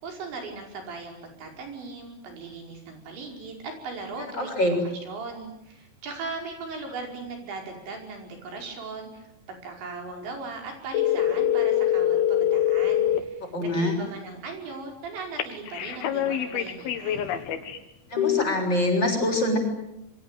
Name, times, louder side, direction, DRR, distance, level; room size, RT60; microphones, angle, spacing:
voice 1, 0.0-17.3, right 3 dB, 80° right, 2 dB, 7.6 m, -38 dB
voice 2, 4.4-4.8 13.5-14.0 18.1-19.6, left 1 dB, 25° left, 2 dB, 7.5 m, -24 dB
sound 1, 10.9-13.2 15.4-17.8 18.2-18.4, left 11 dB, 65° left, 3.4 m, -24 dB
27.0 x 23.5 x 9.2 m, 0.85 s
omnidirectional pair, 5.1 m